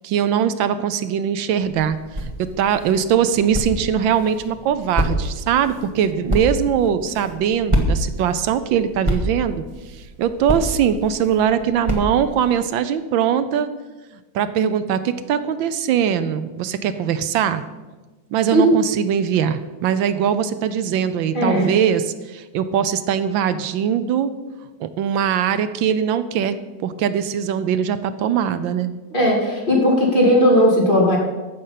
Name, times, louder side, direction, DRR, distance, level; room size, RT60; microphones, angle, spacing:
voice 1, 0.0-9.6 10.2-13.7 14.3-17.6 18.3-24.3 24.8-28.9, right 8 dB, 85° right, 12 dB, 1.4 m, -21 dB
sound 1, 1.6-12.5, equal, 20° right, 1.3 m, -28 dB
voice 2, 21.3-21.7 29.1-31.2, equal, 25° left, -3 dB, 2.8 m, -16 dB
15.0 x 6.7 x 5.7 m, 1.2 s
omnidirectional pair, 2.1 m